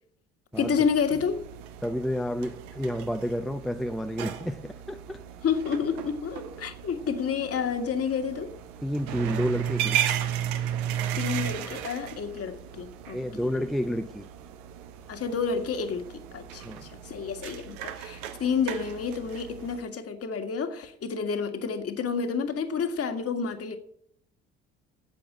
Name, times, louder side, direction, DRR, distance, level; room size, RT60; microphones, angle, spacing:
sound 1, 0.5-19.8, right 10 dB, 70° right, 1.1 m, -35 dB
voice 1, 0.6-1.4 5.4-8.5 11.2-13.5 15.1-23.8, left 6 dB, 45° left, 1.8 m, -30 dB
voice 2, 1.8-5.2 8.8-10.0 13.1-14.3 16.6-16.8, equal, ahead, 0.6 m, -30 dB
8.8 x 7.8 x 8.7 m
hypercardioid pair, 55°, 33 cm